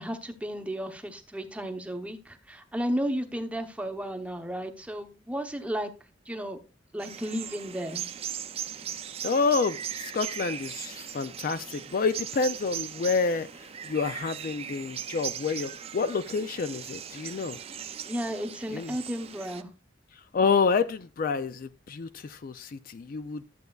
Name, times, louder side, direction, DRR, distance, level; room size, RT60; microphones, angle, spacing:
voice 1, 0.0-5.9 6.3-6.6 6.9-8.0 18.1-19.7, equal, 5° right, 0.8 m, -33 dB
sound 1, 7.0-19.6, right 9 dB, 30° right, 0.4 m, -39 dB
voice 2, 9.2-17.6 18.7-18.9 20.3-23.4, left 4 dB, 45° left, 0.4 m, -28 dB
12.0 x 7.9 x 2.3 m
head